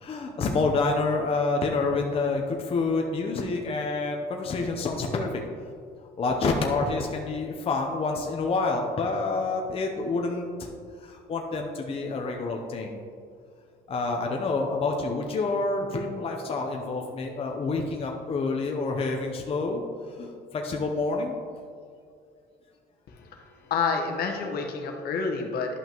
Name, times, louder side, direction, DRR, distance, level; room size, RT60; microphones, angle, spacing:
voice 1, 0.0-5.3 6.2-10.7 11.0-13.0 13.9-19.8 20.2-21.3, left 3 dB, 35° left, 1 dB, 0.7 m, -28 dB
voice 2, 23.1-25.8, left 5 dB, 65° left, 2 dB, 1.1 m, -29 dB
11.0 x 5.6 x 3.0 m, 2.2 s
cardioid pair, 110°, 17 cm